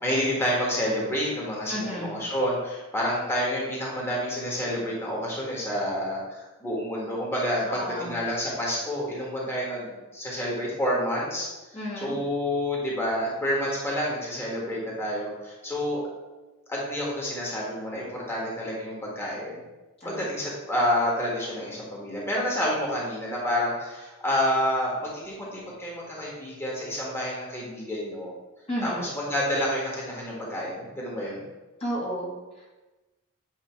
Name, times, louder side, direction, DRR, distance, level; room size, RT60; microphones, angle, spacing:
voice 1, 0.0-11.5 12.0-16.0 16.7-19.6 20.0-28.3 28.8-31.4, equal, 10° left, -5 dB, 1.5 m, -29 dB
voice 2, 1.7-2.2 7.6-8.2 11.7-12.2 20.0-20.3 28.7-29.1 31.8-32.7, equal, 25° left, -6 dB, 1.4 m, -33 dB
9.1 x 3.1 x 4.5 m, 1.1 s
head